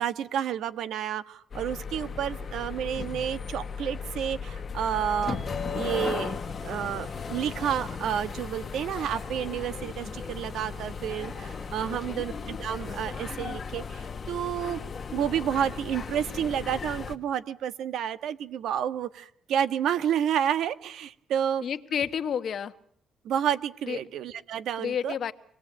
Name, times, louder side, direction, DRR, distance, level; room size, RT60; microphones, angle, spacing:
voice 1, 0.0-5.4 5.7-14.8 15.1-21.6 23.2-25.2, right 9 dB, 80° right, 12 dB, 1.4 m, -30 dB
sound 1, 1.5-17.2, left 5 dB, 40° left, 1.6 m, -36 dB
sound 2, 5.1-12.2, right 5 dB, 60° right, 3.8 m, -51 dB
voice 2, 11.9-12.2 21.6-22.7 23.9-24.0 24.8-25.3, left 8 dB, 60° left, 9 dB, 1.5 m, -30 dB
26.0 x 19.5 x 8.8 m, 0.64 s
cardioid pair, 90°, 0 cm